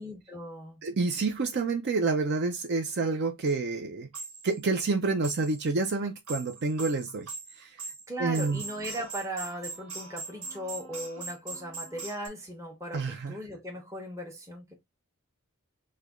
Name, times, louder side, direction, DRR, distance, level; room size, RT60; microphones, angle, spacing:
voice 1, 0.0-0.8 8.1-14.7, equal, 15° right, 0.8 m, -38 dB
voice 2, 0.8-4.1 4.4-7.3 7.6-7.8 8.2-8.6 12.9-13.3, right 3 dB, 50° right, 0.5 m, -28 dB
sound 1, 3.1-3.2 3.5-3.6 4.1-4.6 5.2-5.7 6.0-12.3, right 3 dB, 90° right, 1.3 m, -41 dB
3.2 x 2.2 x 3.5 m
head